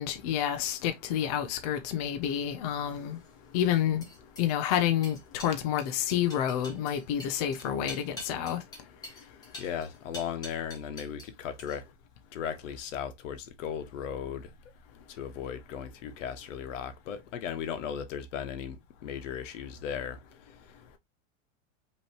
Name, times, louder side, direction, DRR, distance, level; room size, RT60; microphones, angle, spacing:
voice 1, 0.0-3.2 3.5-4.0 4.4-8.6, left 10 dB, 35° left, 0.5 m, -29 dB
sound 1, 2.8-11.3 11.6-12.0, left 1 dB, 10° left, 1.1 m, -47 dB
voice 2, 9.6-11.8 12.3-14.5 15.1-20.2 20.5-20.6, left 8 dB, 80° left, 1.2 m, -36 dB
5.4 x 3.1 x 2.9 m
supercardioid pair, 180°, 37 cm